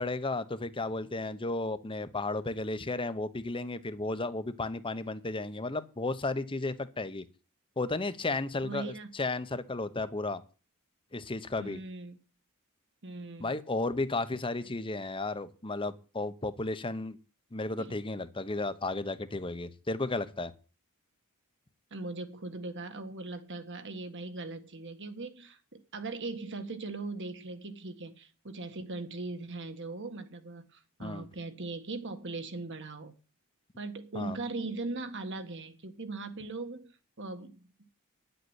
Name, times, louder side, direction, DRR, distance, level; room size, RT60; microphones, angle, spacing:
voice 1, 0.0-7.3 7.8-10.4 11.1-11.8 13.4-17.2 17.5-20.5 31.0-31.3 34.1-34.4, left 2 dB, 25° left, 0.9 m, -33 dB
voice 2, 8.6-9.1 11.6-12.2 13.0-13.5 21.9-33.1 33.8-36.9 37.2-37.7, right 3 dB, 55° right, 1.7 m, -39 dB
10.5 x 7.9 x 8.1 m
head